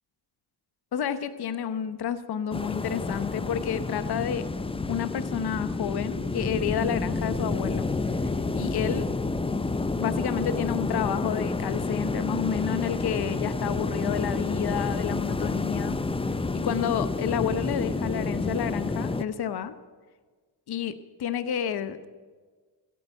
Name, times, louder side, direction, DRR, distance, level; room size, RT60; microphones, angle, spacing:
voice 1, 0.9-4.5 4.9-9.1 10.0-16.0 16.5-19.8 20.7-22.1, left 8 dB, 60° left, 12 dB, 0.9 m, -30 dB
sound 1, 2.5-19.2, left 3 dB, 15° left, 0.5 m, -29 dB
14.5 x 9.4 x 8.9 m, 1.4 s
cardioid pair, 70°, 44 cm